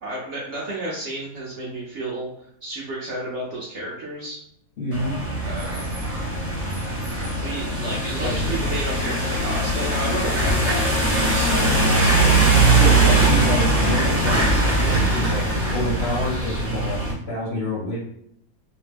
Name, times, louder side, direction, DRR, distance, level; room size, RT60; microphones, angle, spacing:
voice 1, 0.0-2.3 2.6-4.4 5.4-5.8 7.4-12.3, right 1 dB, 65° right, -4 dB, 0.7 m, -32 dB
voice 2, 4.8-5.1 8.2-8.3 12.8-15.4 15.7-17.0 17.3-18.0, left 1 dB, 60° left, -5 dB, 0.7 m, -27 dB
sound 1, 4.9-17.1, right 2 dB, 10° right, 0.7 m, -21 dB
2.8 x 2.0 x 3.3 m, 0.72 s
omnidirectional pair, 1.7 m